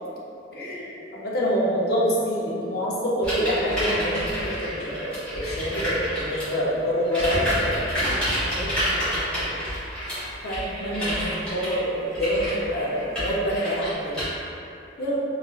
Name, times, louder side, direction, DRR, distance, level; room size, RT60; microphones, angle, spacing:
voice 1, 0.5-7.8 8.3-9.5 10.4-14.2 15.0-15.2, equal, 55° left, -6 dB, 0.6 m, -27 dB
sound 1, 3.2-6.6 7.0-14.2, equal, 5° left, 1.5 m, -28 dB
4.2 x 2.4 x 2.4 m, 2.8 s
head